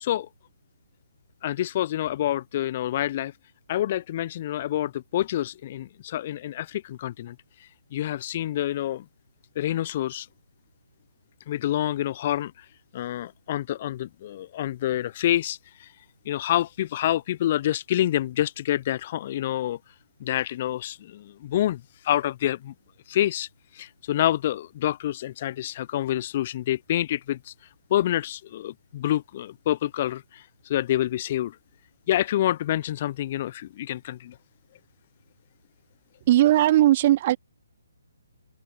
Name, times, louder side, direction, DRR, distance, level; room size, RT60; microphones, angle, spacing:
voice 1, 1.4-3.3 3.7-7.3 7.9-9.0 9.6-10.3 11.5-12.5 12.9-15.9 16.3-19.8 20.2-22.7 23.1-23.5 23.7-27.5 27.9-31.5 32.1-34.3, left 12 dB, 40° left, 0.6 m, -27 dB
voice 2, 36.2-37.4, right 14 dB, 35° right, 2.6 m, -18 dB
open air
figure-of-eight pair, 140°, 0 cm